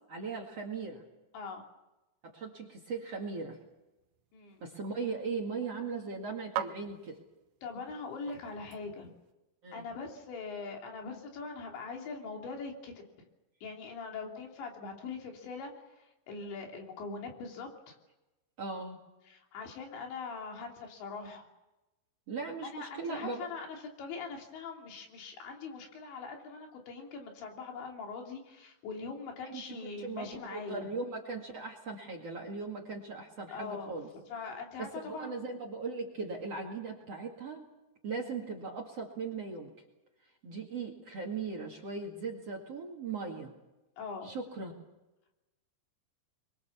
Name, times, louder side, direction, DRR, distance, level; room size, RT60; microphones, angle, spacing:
voice 1, 0.1-1.0 2.2-3.6 4.6-7.2 9.6-9.8 18.6-19.0 22.3-23.5 29.5-34.1 34.8-37.7 38.0-39.7 40.4-43.5 44.2-44.7, right 4 dB, 45° right, 0 dB, 2.5 m, -39 dB
sound 1, 3.5-9.3, right 10 dB, 80° right, 3.2 m, -45 dB
voice 2, 4.3-4.6 7.6-9.1 9.7-13.0 13.6-18.0 19.3-21.5 22.7-30.9 33.5-35.4 44.0-44.3, left 4 dB, 80° left, 1 dB, 5.3 m, -42 dB
24.5 x 23.0 x 7.1 m, 1.0 s
omnidirectional pair, 5.1 m